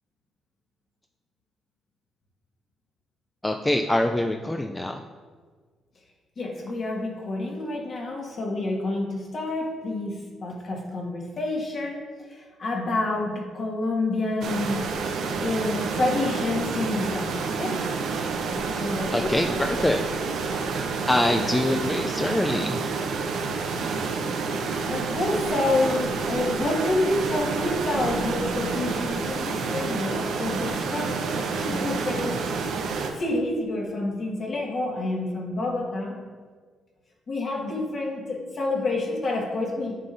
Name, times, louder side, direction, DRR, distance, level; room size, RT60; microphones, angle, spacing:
voice 1, 3.4-5.0 19.1-20.0 21.1-22.9, left 1 dB, 10° left, 4 dB, 0.3 m, -24 dB
voice 2, 6.4-12.0 12.3-14.8 15.4-17.8 18.7-19.6 24.9-32.5 33.1-36.2 37.3-40.0, left 2 dB, 45° left, -1 dB, 1.6 m, -28 dB
sound 1, 14.4-33.1, right 4 dB, 75° right, 0.8 m, -29 dB
9.1 x 7.4 x 2.7 m, 1.5 s
cardioid pair, 120°, 0 cm